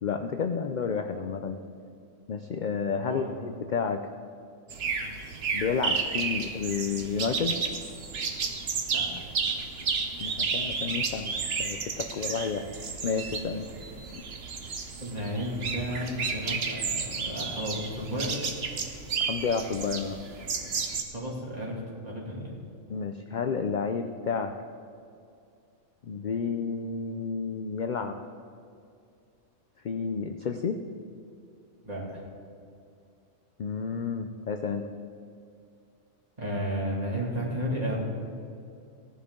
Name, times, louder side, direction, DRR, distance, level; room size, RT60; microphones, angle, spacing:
voice 1, 0.0-1.6 2.3-4.0 5.5-7.6 10.2-12.7 13.0-13.7 19.3-20.2 22.9-24.5 26.0-28.2 29.8-30.8 33.6-34.9, left 5 dB, 65° left, 6 dB, 0.4 m, -31 dB
voice 2, 3.0-3.5 4.8-5.1 8.9-9.2 15.0-18.4 21.1-22.6 31.8-32.2 36.4-38.0, equal, 30° right, -4 dB, 2.7 m, -33 dB
sound 1, 4.7-21.0, right 5 dB, 50° right, 1.1 m, -32 dB
17.0 x 11.0 x 3.7 m, 2.4 s
omnidirectional pair, 1.4 m